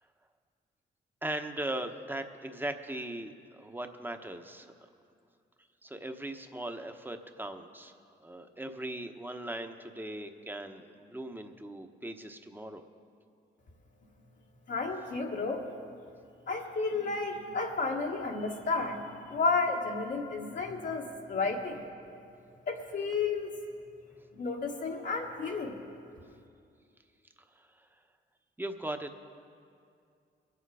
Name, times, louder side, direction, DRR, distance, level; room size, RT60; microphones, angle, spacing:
voice 1, 1.2-4.7 5.8-7.9 8.2-12.8 27.5-27.9 28.6-29.2, right 1 dB, 10° right, 6 dB, 1.1 m, -39 dB
voice 2, 14.7-15.7 16.5-21.9 22.7-23.5 24.3-25.8, left 4 dB, 65° left, -3 dB, 1.7 m, -32 dB
22.0 x 8.3 x 4.9 m, 2.4 s
supercardioid pair, 55°, 21 cm